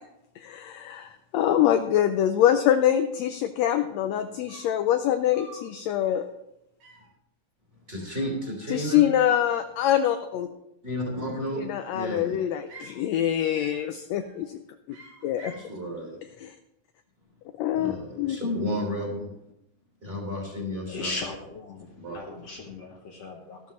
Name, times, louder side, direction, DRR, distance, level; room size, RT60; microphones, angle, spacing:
voice 1, 0.4-6.3 8.7-10.5 11.5-14.6 15.2-15.5 16.4-16.5 17.6-18.4, left 11 dB, 80° left, 8 dB, 1.6 m, -24 dB
sound 1, 3.4-3.5 3.7-4.0 4.5-4.9 5.3-5.7 6.1-6.4 6.8-7.1 7.9-8.8 9.1-9.8 11.0-11.6 12.1-13.0 13.5-13.9 14.2-14.5 14.9-15.7, right 2 dB, 85° right, 3.5 m, -50 dB
voice 2, 7.9-9.1 10.8-12.4 15.4-16.2 17.7-19.3 20.0-21.1 21.8-22.2, equal, 20° right, -1 dB, 3.2 m, -32 dB
voice 3, 20.9-23.6, left 3 dB, 60° left, 1 dB, 2.0 m, -37 dB
13.5 x 12.5 x 3.1 m, 0.83 s
omnidirectional pair, 3.6 m